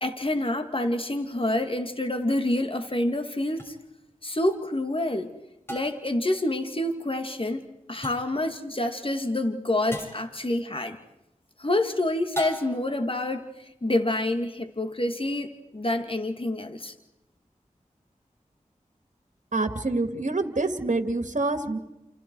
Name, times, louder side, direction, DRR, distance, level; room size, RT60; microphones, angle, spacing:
voice 1, 0.0-3.8 4.2-5.4 5.7-7.6 7.9-11.0 11.6-16.9, left 1 dB, 40° left, 6 dB, 2.3 m, -27 dB
sound 1, 3.6-3.7 5.7-6.2 8.0-8.4 9.9-10.3 12.3-13.0, right 1 dB, 15° left, 6.1 m, -37 dB
voice 2, 19.5-21.8, right 2 dB, 60° right, 7 dB, 2.2 m, -26 dB
29.0 x 29.0 x 4.7 m, 0.92 s
cardioid pair, 40°, 14 cm